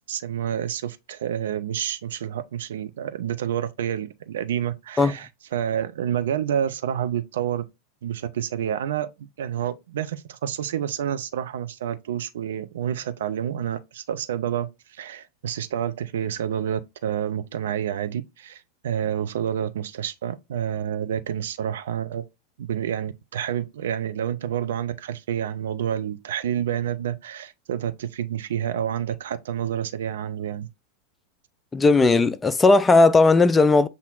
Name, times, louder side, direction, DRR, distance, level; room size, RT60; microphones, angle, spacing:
voice 1, 0.1-7.6 8.0-22.2 22.6-30.7, right 9 dB, 60° right, 0.5 m, -29 dB
voice 2, 31.7-33.9, left 3 dB, 15° left, 0.4 m, -16 dB
7.3 x 2.8 x 2.4 m
figure-of-eight pair, 90°, 0 cm